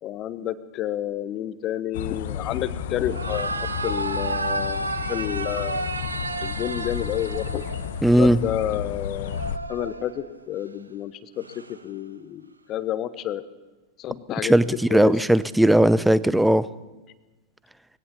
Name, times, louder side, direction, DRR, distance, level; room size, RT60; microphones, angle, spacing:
voice 1, 0.0-3.5 3.8-5.9 6.4-7.6 8.2-13.4 14.0-14.5 14.9-15.1, left 11 dB, 35° left, 15 dB, 1.1 m, -30 dB
sound 1, 1.9-9.6, left 8 dB, 55° left, 1.2 m, -32 dB
sound 2, 3.0-8.2 9.2-10.4 11.4-11.8, right 3 dB, 80° right, 1.3 m, -31 dB
voice 2, 8.0-8.4 14.4-16.7, right 1 dB, 5° right, 17 dB, 0.7 m, -18 dB
21.5 x 17.0 x 7.2 m, 1.2 s
figure-of-eight pair, 90°, 0 cm